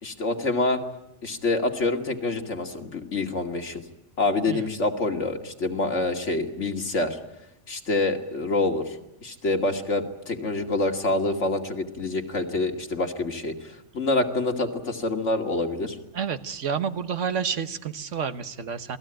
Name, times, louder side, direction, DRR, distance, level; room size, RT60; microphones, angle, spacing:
voice 1, 0.0-0.8 1.2-3.8 4.2-7.2 7.7-9.0 9.2-13.5 13.9-16.0, left 2 dB, 75° left, 4 dB, 2.6 m, -26 dB
voice 2, 16.1-19.0, right 7 dB, 85° right, 11 dB, 1.5 m, -29 dB
28.0 x 19.5 x 9.0 m, 0.90 s
omnidirectional pair, 1.2 m